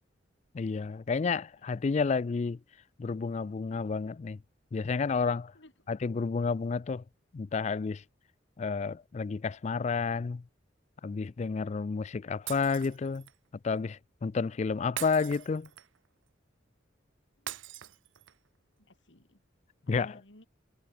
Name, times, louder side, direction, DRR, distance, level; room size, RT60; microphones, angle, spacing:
voice 1, 0.5-2.6 3.0-4.4 4.7-5.5 5.9-7.0 7.3-8.0 8.6-10.4 11.0-13.2 13.6-15.7 19.9-20.2, left 5 dB, 35° left, 0.4 m, -30 dB
voice 2, 5.5-5.9 17.4-17.6 18.8-19.4 19.9-20.5, left 1 dB, 75° left, 4.7 m, -58 dB
Shatter, 12.5-13.4 15.0-16.1 17.5-18.5, right 12 dB, 90° right, 0.7 m, -42 dB
head